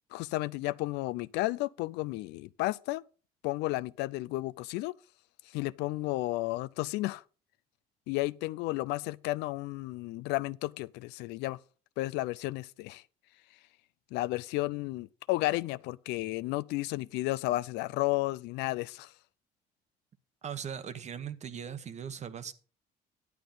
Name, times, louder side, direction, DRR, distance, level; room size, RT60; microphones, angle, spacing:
voice 1, 0.1-3.0 3.4-4.9 5.5-7.2 8.1-11.6 12.0-13.0 14.1-19.1, left 19 dB, 90° left, 0.4 m, -32 dB
voice 2, 20.4-22.5, right 8 dB, 45° right, 1.0 m, -39 dB
11.0 x 8.6 x 3.8 m
cardioid pair, 110°, 17 cm